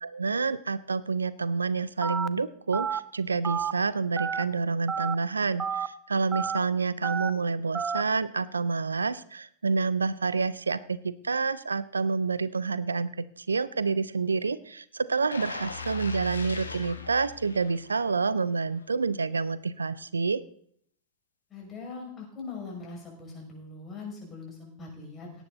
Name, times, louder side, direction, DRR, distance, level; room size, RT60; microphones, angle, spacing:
voice 1, 0.0-20.4, right 4 dB, 75° right, 17 dB, 0.5 m, -28 dB
Telephone, 2.0-2.3 2.7-3.0 3.4-3.7 4.2-4.4 4.9-5.2 5.6-5.9 6.3-6.6 7.0-7.3 7.7-8.0, right 6 dB, 15° right, 0.7 m, -30 dB
sound 1, 15.3-18.3 18.7-18.8, left 5 dB, 80° left, 1.5 m, -39 dB
voice 2, 21.5-25.4, left 4 dB, 25° left, -1 dB, 6.0 m, -41 dB
18.0 x 9.2 x 4.1 m, 0.62 s
figure-of-eight pair, 90°, 0 cm